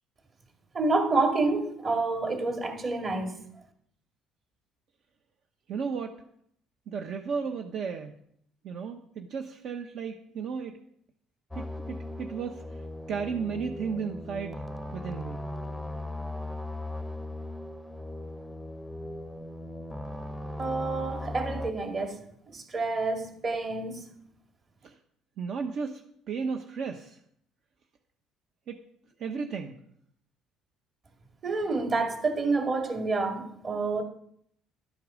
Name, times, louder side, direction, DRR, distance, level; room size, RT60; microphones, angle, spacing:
voice 1, 0.7-3.4 20.6-22.2 22.5-24.1 31.4-34.0, right 3 dB, 35° right, 2.1 m, -28 dB
voice 2, 5.7-6.2 6.9-8.2 8.6-10.8 11.5-14.6 14.9-15.5 24.8-25.0 25.4-27.2 28.7-28.8 29.2-29.8, right 5 dB, 55° right, 0.9 m, -34 dB
sound 1, 11.5-21.7, left 1 dB, ahead, 0.7 m, -38 dB
12.0 x 8.4 x 6.3 m
cardioid pair, 135°, 0 cm